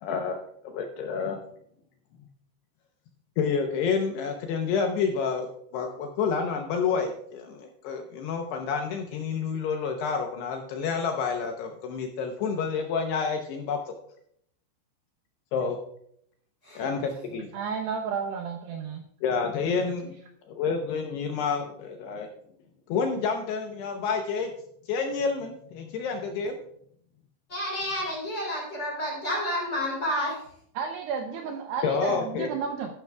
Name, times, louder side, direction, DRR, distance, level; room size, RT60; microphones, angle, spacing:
voice 1, 0.0-1.4 3.4-13.9 15.5-15.8 16.8-17.5 19.2-20.2 20.6-22.3 22.9-24.5 24.9-26.6 31.8-32.5, left 5 dB, 80° left, 3 dB, 2.5 m, -29 dB
voice 2, 17.5-19.0 30.8-32.9, right 6 dB, 80° right, 3 dB, 2.4 m, -32 dB
voice 3, 27.5-30.4, left 1 dB, 25° left, -3 dB, 3.6 m, -30 dB
12.0 x 11.5 x 2.3 m, 0.68 s
omnidirectional pair, 5.7 m